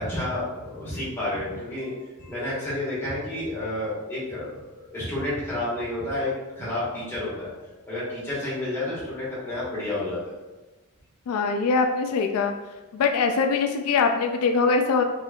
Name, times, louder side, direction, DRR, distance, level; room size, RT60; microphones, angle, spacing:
voice 1, 0.0-1.9 2.2-7.5 7.9-10.3, left 1 dB, 10° left, -9 dB, 1.3 m, -30 dB
voice 2, 11.3-12.5 12.9-15.0, left 4 dB, 80° left, 6 dB, 0.3 m, -22 dB
4.0 x 2.8 x 2.4 m, 1.2 s
head